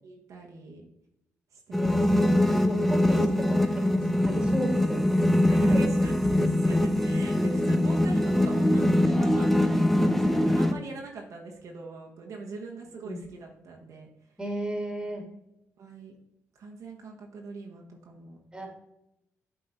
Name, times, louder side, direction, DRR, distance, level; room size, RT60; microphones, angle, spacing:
voice 1, 0.0-0.8 1.5-2.9 5.5-14.1 15.8-16.1 16.5-18.7, right 3 dB, 70° right, 0 dB, 1.2 m, -42 dB
sound 1, 1.7-10.7, left 1 dB, 5° left, 0.6 m, -23 dB
voice 2, 1.8-5.1 5.5-5.8 7.4-7.5 13.0-13.2 14.4-15.2 18.5-18.7, right 1 dB, 15° right, 2 dB, 2.0 m, -34 dB
7.9 x 3.8 x 4.1 m, 0.82 s
cardioid pair, 70°, 6 cm